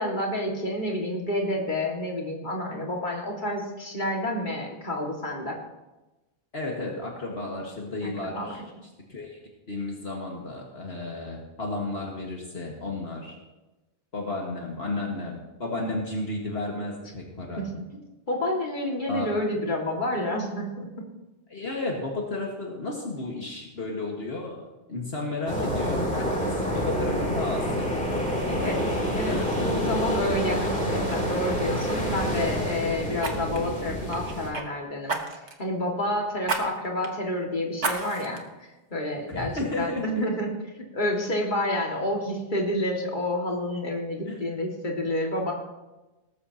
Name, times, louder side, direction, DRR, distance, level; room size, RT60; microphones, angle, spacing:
voice 1, 0.0-5.6 8.0-8.6 17.6-17.7 18.3-20.9 28.4-28.8 29.1-29.4 29.6-35.2 35.6-38.4 38.9-39.5 39.8-40.5 40.9-45.5, left 1 dB, 45° left, -1 dB, 2.3 m, -29 dB
voice 2, 6.5-8.6 9.1-9.4 9.7-13.4 14.1-17.7 19.0-19.3 21.5-28.1 29.2-30.0 32.4-32.5 39.3-40.3 44.3-44.6, left 2 dB, 65° left, -1 dB, 2.0 m, -33 dB
sound 1, 25.5-34.5, equal, 5° left, 3.3 m, -28 dB
Fire, 30.5-30.7 31.1-31.3 33.2-34.7 35.1-35.6 36.4-36.6 37.0-37.1 37.8-38.4 38.9-39.0, right 3 dB, 85° right, 1.7 m, -31 dB
18.0 x 14.0 x 2.9 m, 1.1 s
omnidirectional pair, 1.1 m